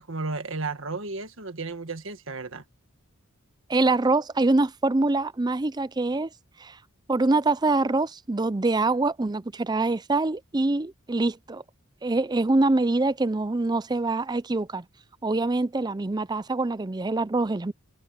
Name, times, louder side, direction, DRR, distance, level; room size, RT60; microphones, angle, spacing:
voice 1, 0.0-2.6, right 3 dB, 65° right, 1.7 m, -33 dB
voice 2, 3.7-6.3 6.6-6.8 7.1-11.6 12.0-14.8 15.2-17.7, right 2 dB, 20° right, 0.5 m, -24 dB
head